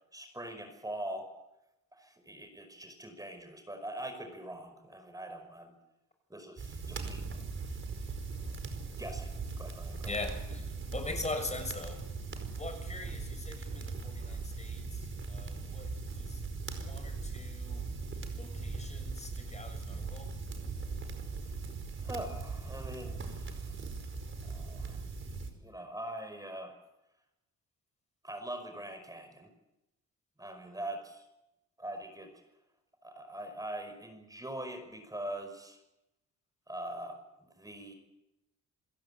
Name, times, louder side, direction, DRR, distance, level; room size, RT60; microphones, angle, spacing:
voice 1, 0.1-1.3 1.9-5.8 6.3-7.3 8.9-10.1 22.0-23.8 24.4-25.0 25.6-26.7 28.2-29.5 30.4-31.3 31.8-32.3 33.0-35.8 36.7-37.9, right 1 dB, 10° right, 5.5 m, -43 dB
sound 1, 6.6-25.5, right 4 dB, 40° right, 5.0 m, -39 dB
voice 2, 10.0-12.1 12.6-16.4 16.7-17.9 18.3-20.3, left 3 dB, 20° left, 6.7 m, -42 dB
28.5 x 16.0 x 8.8 m
cardioid pair, 90°, 30 cm